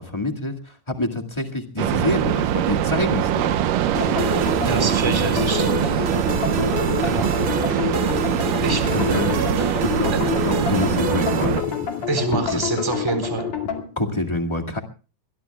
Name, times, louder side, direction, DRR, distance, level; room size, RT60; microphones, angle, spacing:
voice 1, 0.0-3.7 8.9-9.4 9.8-10.2 10.4-11.7 12.3-12.6 13.9-14.8, left 2 dB, 15° left, 3 dB, 1.0 m, -26 dB
sound 1, 1.8-11.6, right 10 dB, 80° right, 2.5 m, -23 dB
sound 2, 3.9-13.8, left 8 dB, 55° left, 3.3 m, -28 dB
sound 3, 3.9-12.2, right 3 dB, 45° right, 2.5 m, -31 dB
voice 2, 4.6-6.1 7.0-7.6 8.6-8.9 10.1-10.2 12.1-13.5, right 3 dB, 5° right, 7 dB, 3.6 m, -26 dB
24.0 x 20.5 x 2.3 m, 0.36 s
omnidirectional pair, 4.0 m